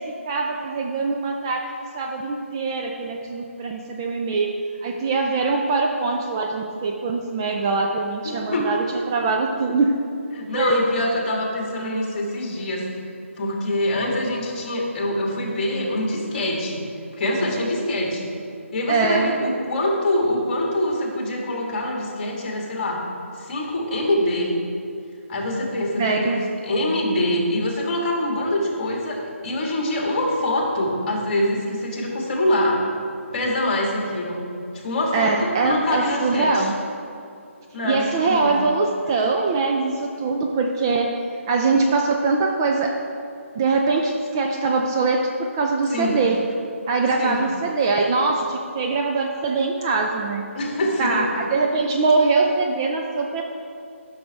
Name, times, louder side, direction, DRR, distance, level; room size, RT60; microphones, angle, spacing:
voice 1, 0.0-10.0 10.5-10.8 18.9-19.3 26.0-26.4 35.1-36.7 37.8-41.2 41.5-43.0 43.5-46.4 46.9-50.5 51.0-53.4, right 3 dB, 20° right, 1 dB, 0.3 m, -22 dB
voice 2, 8.2-8.7 10.3-12.8 13.4-16.8 17.2-18.3 18.7-23.0 23.4-24.5 25.3-32.8 33.3-34.4 34.7-36.7 37.7-38.6 45.9-46.2 47.2-47.4 50.5-51.3, left 1 dB, 35° left, -1 dB, 1.9 m, -24 dB
12.0 x 6.2 x 3.5 m, 2.5 s
hypercardioid pair, 165°, 7 cm